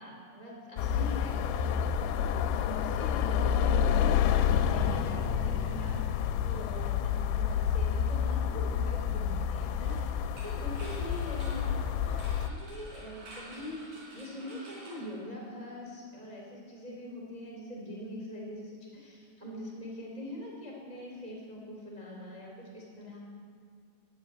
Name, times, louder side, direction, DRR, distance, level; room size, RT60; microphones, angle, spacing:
voice 1, 0.0-6.0 6.4-11.8 12.0-23.2, left 1 dB, 15° right, -3 dB, 1.7 m, -43 dB
sound 1, 0.8-12.5, left 8 dB, 85° left, 2.8 m, -29 dB
sound 2, 9.8-15.8, right 1 dB, 50° right, 5.0 m, -51 dB
14.5 x 8.1 x 9.0 m, 2.1 s
omnidirectional pair, 5.0 m